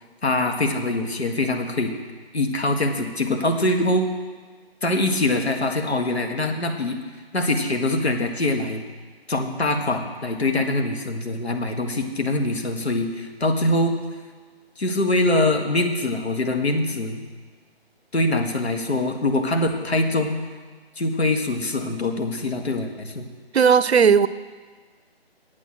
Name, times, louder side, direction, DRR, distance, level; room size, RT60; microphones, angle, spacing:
voice 1, 0.2-1.9 2.3-4.1 4.8-7.0 7.3-8.8 9.3-14.0 14.8-17.2 18.1-20.4 21.0-23.3, left 2 dB, 85° left, 4 dB, 1.7 m, -23 dB
voice 2, 23.5-24.3, right 6 dB, 90° right, 16 dB, 0.6 m, -15 dB
9.0 x 8.4 x 7.7 m, 1.5 s
figure-of-eight pair, 160°, 32 cm